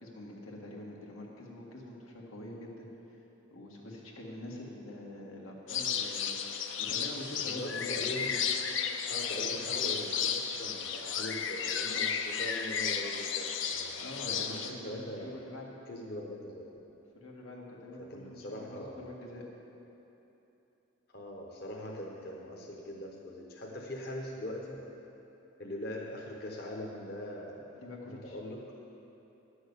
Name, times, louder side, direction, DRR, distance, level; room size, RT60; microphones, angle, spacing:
voice 1, 0.0-3.2 3.5-8.0 14.0-15.7 17.1-19.4 27.8-28.4, left 1 dB, 90° left, -3 dB, 1.9 m, -45 dB
sound 1, 5.7-14.7, left 7 dB, 65° left, 0.6 m, -33 dB
voice 2, 7.4-8.4 9.1-15.4 15.9-16.7 18.0-19.0 21.1-24.8 25.6-27.7 28.1-28.6, left 1 dB, 50° left, -2 dB, 1.0 m, -41 dB
11.0 x 6.3 x 8.2 m, 3.0 s
head